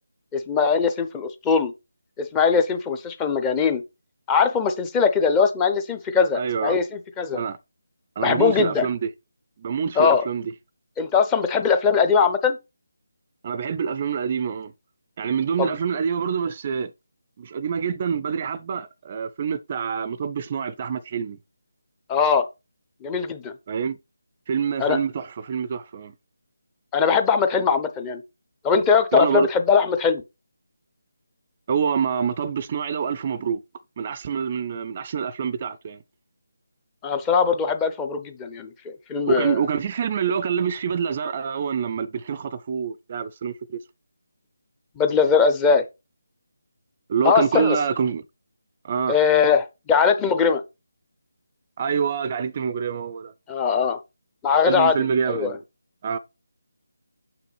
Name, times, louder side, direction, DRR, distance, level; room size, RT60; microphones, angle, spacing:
voice 1, 0.3-1.7 2.2-3.8 4.3-7.4 8.2-8.9 10.0-10.2 11.0-12.6 15.6-15.7 22.1-22.5 23.0-23.5 24.8-25.0 26.9-28.2 28.6-30.2 37.0-39.6 45.0-45.8 47.2-47.8 49.1-50.6 53.5-54.0 54.4-55.0 55.3-55.6, left 6 dB, 15° left, 0.6 m, -21 dB
voice 2, 6.3-6.8 7.3-7.6 8.2-9.1 9.6-10.4 13.4-14.7 15.2-16.9 17.4-21.4 23.7-24.0 24.5-26.1 29.1-29.5 31.7-33.6 34.0-36.0 39.3-43.8 47.1-48.2 48.8-49.2 51.8-53.3 54.7-55.6 56.0-56.2, right 7 dB, 30° right, 0.4 m, -26 dB
6.9 x 5.8 x 3.3 m
figure-of-eight pair, 155°, 0 cm